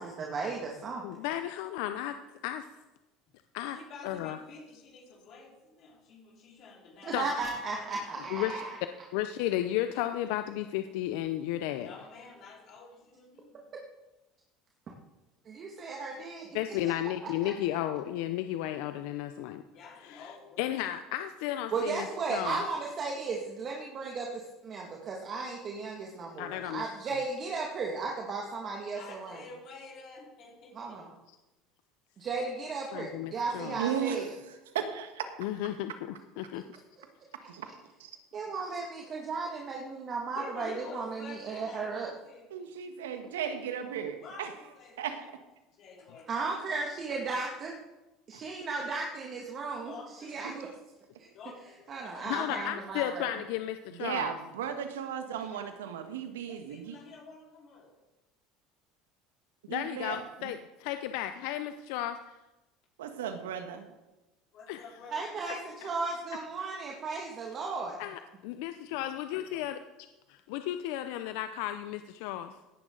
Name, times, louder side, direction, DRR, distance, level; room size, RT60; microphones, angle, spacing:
voice 1, 0.0-1.0 7.0-8.8 15.5-16.6 17.4-17.5 21.7-29.4 30.7-31.1 32.2-34.2 38.3-42.1 46.3-47.8 48.3-50.7 51.2-51.3 51.9-53.3 65.1-65.6 65.8-68.0, right 4 dB, 45° right, 0 dB, 2.1 m, -35 dB
voice 2, 1.0-2.2 2.4-2.7 3.5-3.8 4.0-4.4 7.1-7.3 8.3-8.6 9.1-11.9 16.5-19.6 20.0-22.6 26.4-26.8 31.3-31.4 32.9-33.8 35.4-36.6 52.3-54.3 59.7-62.2 64.7-64.8 65.8-65.9 67.1-67.2 68.0-69.8 70.5-72.6, left 12 dB, 70° left, 9 dB, 0.6 m, -34 dB
voice 3, 3.7-7.4 7.7-7.8 11.8-13.6 19.7-20.7 28.9-31.0 40.3-42.7 44.2-44.5 44.7-45.1 45.8-46.5 49.8-50.4 51.3-52.3 55.4-55.6 56.5-57.9 64.5-65.7, left 3 dB, 55° left, -4 dB, 4.5 m, -49 dB
voice 4, 33.6-34.2 34.7-35.2 37.5-37.7 38.0-38.1 42.5-44.5 45.0-45.2 53.9-57.0 59.7-60.5 63.0-63.9, right 8 dB, 85° right, 7 dB, 1.5 m, -35 dB
16.5 x 11.0 x 3.9 m, 1.0 s
hypercardioid pair, 85°, 0 cm